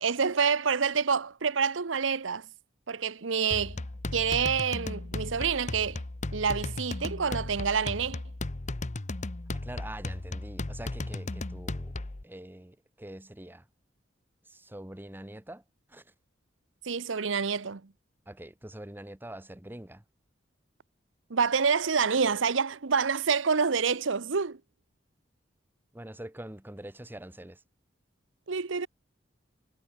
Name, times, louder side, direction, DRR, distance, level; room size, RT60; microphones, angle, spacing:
voice 1, 0.0-2.5 2.9-3.8 4.1-6.0 6.3-8.2 16.8-17.8 21.3-24.6 28.5-28.9, right 6 dB, 90° right, 0.9 m, -27 dB
sound 1, 3.5-12.2, left 2 dB, 40° left, 0.9 m, -36 dB
voice 2, 9.6-12.0 12.2-13.7 14.4-15.6 15.9-16.1 18.3-20.0 25.9-27.6, right 1 dB, 10° right, 1.2 m, -44 dB
head